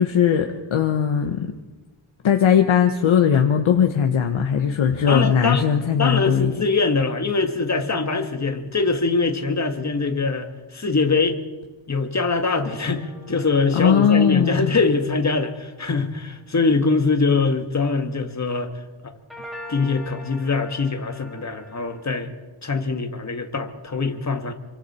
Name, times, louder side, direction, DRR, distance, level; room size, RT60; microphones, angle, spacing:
voice 1, 0.0-1.5 2.2-6.6 13.7-14.7, left 8 dB, 75° left, 4 dB, 1.4 m, -19 dB
voice 2, 5.1-5.7 6.0-11.4 11.9-18.7 19.0-19.1 19.7-22.3 22.6-24.5, left 4 dB, 35° left, 6 dB, 2.0 m, -23 dB
sound 1, 12.5-16.0 19.3-22.1, left 1 dB, ahead, 7.4 m, -43 dB
27.5 x 24.5 x 4.4 m, 1.2 s
wide cardioid pair, 125°, 48 cm